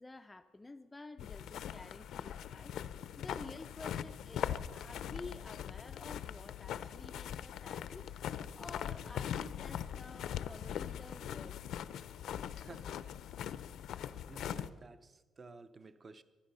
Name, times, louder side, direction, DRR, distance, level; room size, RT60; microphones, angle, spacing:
voice 1, 0.0-2.8 3.2-8.1 8.6-11.6, left 3 dB, 10° left, 8 dB, 0.4 m, -51 dB
sound 1, 1.2-14.7, left 9 dB, 70° left, 0.5 m, -41 dB
voice 2, 3.3-3.6 12.5-13.0 13.5-13.7 14.3-16.2, right 3 dB, 25° right, 13 dB, 0.6 m, -53 dB
24.0 x 10.5 x 5.5 m, 1.3 s
cardioid pair, 160°, 0 cm